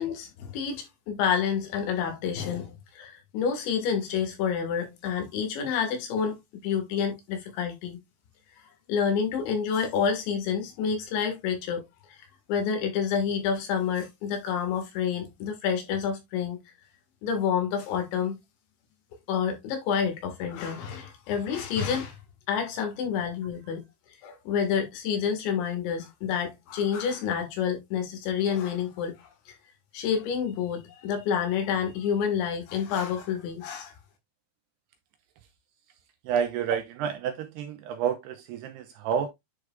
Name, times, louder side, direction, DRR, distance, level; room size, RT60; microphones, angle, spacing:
voice 1, 0.0-6.4 6.6-8.0 8.9-12.2 12.5-16.6 17.2-18.4 19.3-22.2 22.5-23.8 24.2-29.6 29.9-33.9, left 7 dB, 75° left, 4.0 m, -28 dB
voice 2, 36.3-39.3, right 8 dB, 80° right, 2.5 m, -29 dB
10.5 x 4.8 x 2.4 m
omnidirectional pair, 5.4 m